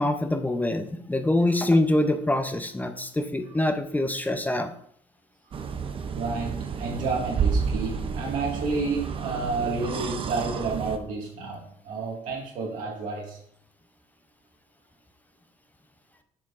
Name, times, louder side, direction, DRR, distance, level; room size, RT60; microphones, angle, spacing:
voice 1, 0.0-4.7, left 1 dB, 10° left, 7 dB, 0.6 m, -24 dB
sound 1, 5.5-11.0, right 5 dB, 40° right, 0.6 m, -30 dB
voice 2, 6.1-13.4, right 4 dB, 85° right, -1 dB, 1.9 m, -30 dB
7.4 x 5.6 x 2.5 m, 0.65 s
cardioid pair, 90°, 13 cm